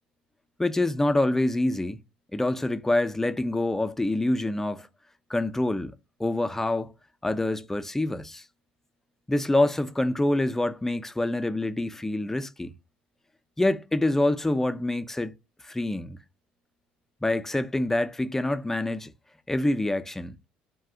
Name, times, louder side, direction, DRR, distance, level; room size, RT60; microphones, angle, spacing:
voice 1, 0.6-2.0 2.3-4.9 5.3-5.9 6.2-6.9 7.2-8.4 9.3-12.7 13.6-15.3 15.6-16.2 17.2-19.1 19.5-20.3, left 1 dB, 10° left, 0.4 m, -26 dB
2.3 x 2.2 x 3.7 m
hypercardioid pair, 65°, 4 cm